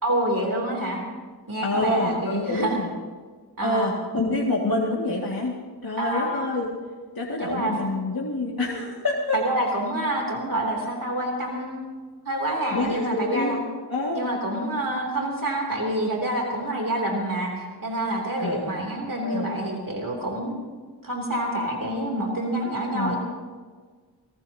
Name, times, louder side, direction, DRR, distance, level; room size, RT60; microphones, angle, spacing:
voice 1, 0.0-1.0 1.5-2.8 3.6-3.9 6.0-6.5 7.4-7.8 9.3-11.8 12.2-13.6 14.1-20.5 21.0-23.2, right 1 dB, 50° right, 0 dB, 3.0 m, -27 dB
voice 2, 1.6-2.9 3.6-5.5 5.8-6.7 7.1-9.4 12.7-13.6 13.9-14.3 18.4-18.7 19.2-19.5 22.9-23.2, left 2 dB, 60° left, -4 dB, 2.2 m, -27 dB
24.0 x 18.5 x 2.8 m, 1.5 s
wide cardioid pair, 50°, 41 cm